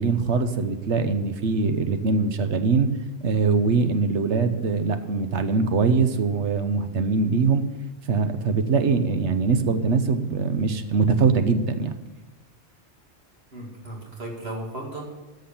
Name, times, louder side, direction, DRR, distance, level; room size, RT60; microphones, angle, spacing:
voice 1, 0.0-2.9 3.2-7.6 8.0-12.0, right 4 dB, 90° right, 9 dB, 1.2 m, -22 dB
voice 2, 13.5-15.0, right 1 dB, 65° right, -1 dB, 2.4 m, -35 dB
13.5 x 6.4 x 8.6 m, 1.1 s
omnidirectional pair, 1.1 m